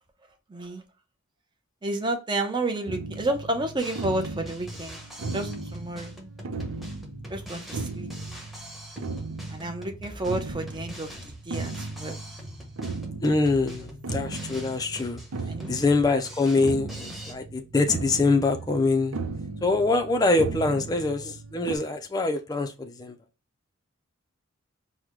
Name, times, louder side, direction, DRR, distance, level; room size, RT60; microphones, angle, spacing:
voice 1, 0.5-0.8 1.8-5.0 5.3-6.1 7.3-8.1 9.5-12.2 15.5-15.7, right 2 dB, 25° right, 0.6 m, -31 dB
sound 1, 2.9-21.8, right 3 dB, 90° right, 0.6 m, -37 dB
Drum kit, 3.8-17.3, equal, ahead, 0.9 m, -44 dB
voice 2, 13.2-15.2 15.7-19.2 19.6-23.2, left 3 dB, 20° left, 0.4 m, -24 dB
4.7 x 2.1 x 3.6 m
head